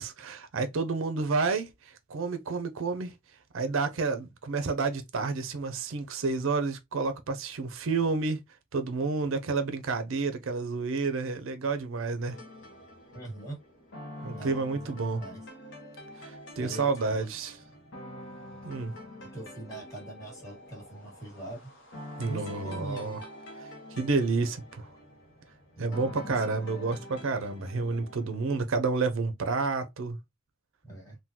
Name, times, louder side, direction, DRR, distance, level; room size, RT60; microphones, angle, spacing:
voice 1, 0.0-3.1 3.5-8.4 8.7-12.4 14.2-15.2 16.2-17.5 18.6-18.9 22.2-23.2 23.6-23.7 24.0-24.8 25.8-30.2, right 4 dB, 70° right, 0.5 m, -30 dB
sound 1, 12.3-28.6, left 1 dB, 60° left, 0.8 m, -46 dB
voice 2, 13.1-13.6 14.2-15.4 16.6-17.3 19.3-21.7 22.2-23.2 25.7-26.3 30.8-31.2, right 1 dB, 15° left, 1.7 m, -42 dB
3.7 x 2.2 x 2.8 m
head